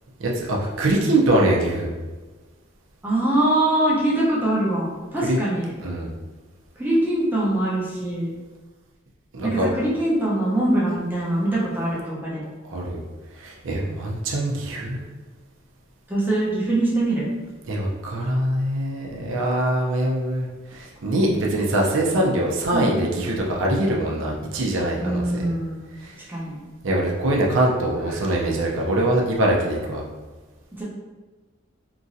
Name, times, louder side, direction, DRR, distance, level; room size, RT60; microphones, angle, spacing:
voice 1, 0.2-1.9 5.2-5.4 5.8-6.1 9.3-9.7 12.7-13.0 13.4-15.0 17.7-25.4 26.0-26.1 26.8-30.0, right 1 dB, 80° right, -2 dB, 0.5 m, -23 dB
voice 2, 3.0-5.7 6.8-8.3 9.4-12.4 16.1-17.3 22.7-22.9 25.0-25.8 26.3-26.6 28.1-28.2 30.7-30.8, right 1 dB, 10° right, -7 dB, 0.6 m, -23 dB
2.9 x 2.6 x 2.6 m, 1.3 s
head